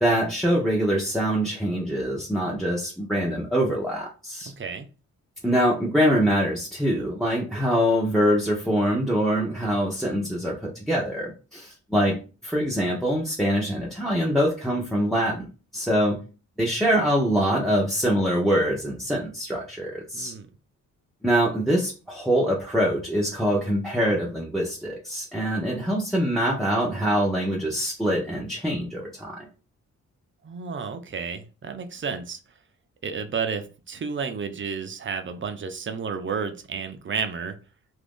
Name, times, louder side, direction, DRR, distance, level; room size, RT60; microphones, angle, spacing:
voice 1, 0.0-4.5 5.4-12.2 12.4-16.2 16.6-20.3 21.2-29.5, equal, ahead, -3 dB, 0.7 m, -24 dB
voice 2, 4.6-4.9 20.1-20.5 30.4-32.4 33.0-37.6, right 5 dB, 40° right, 7 dB, 0.5 m, -31 dB
2.8 x 2.6 x 3.6 m, 0.34 s
cardioid pair, 100°, 31 cm